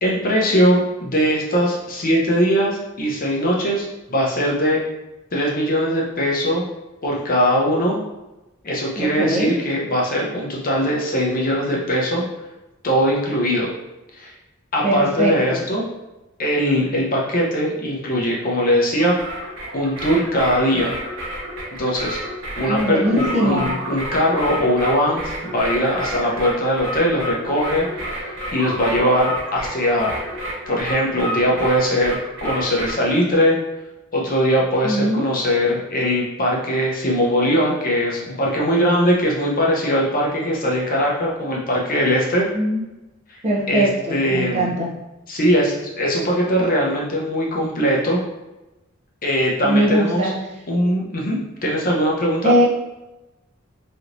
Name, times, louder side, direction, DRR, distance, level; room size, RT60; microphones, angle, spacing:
voice 1, 0.0-4.8 5.3-6.7 7.0-8.0 8.6-12.2 12.8-13.7 14.1-14.3 14.7-15.8 16.4-19.2 19.7-20.9 21.8-22.2 22.6-27.9 28.1-28.3 28.5-30.2 30.7-33.6 34.1-42.5 43.7-44.7 45.3-48.2 49.2-50.3 50.7-52.5, equal, 45° left, -3 dB, 0.7 m, -20 dB
voice 2, 9.0-9.5 14.8-15.6 22.7-23.7 34.8-35.3 42.5-42.8 43.4-44.9 49.6-50.3 52.4-52.6, right 1 dB, 30° right, -4 dB, 0.7 m, -20 dB
sound 1, 19.0-33.1, equal, 60° right, 1.3 m, -30 dB
3.4 x 2.9 x 2.5 m, 1.0 s
head